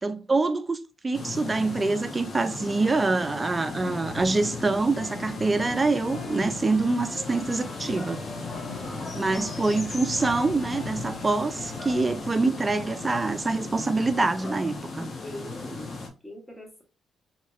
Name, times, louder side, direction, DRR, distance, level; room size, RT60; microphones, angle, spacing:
voice 1, 0.0-8.2 9.1-15.1, right 3 dB, 25° right, 0.4 m, -25 dB
sound 1, 1.1-16.1, left 3 dB, 40° left, 0.7 m, -37 dB
sound 2, 3.7-13.2, left 3 dB, 80° left, 0.8 m, -42 dB
Wind instrument woodwind instrument, 3.8-12.6, equal, ahead, 1.1 m, -50 dB
voice 2, 8.8-9.1 15.2-15.9 16.2-16.8, equal, 20° left, 1.2 m, -42 dB
2.9 x 2.8 x 2.4 m
cardioid pair, 90°, 0 cm